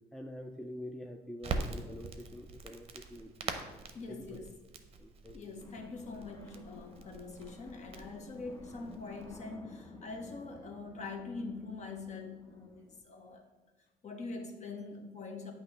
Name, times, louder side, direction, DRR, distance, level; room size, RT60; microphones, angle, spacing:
voice 1, 0.1-3.6 4.1-4.5 5.0-5.4, left 1 dB, 5° left, 4 dB, 0.4 m, -46 dB
Crackle, 1.4-9.3, right 4 dB, 35° right, 0.7 m, -43 dB
voice 2, 3.9-4.6 5.3-13.4 14.0-15.5, left 3 dB, 45° left, 4 dB, 1.0 m, -44 dB
sound 1, 5.6-13.0, left 2 dB, 20° left, 0.8 m, -53 dB
8.5 x 3.0 x 5.5 m, 1.2 s
cardioid pair, 110°, 17 cm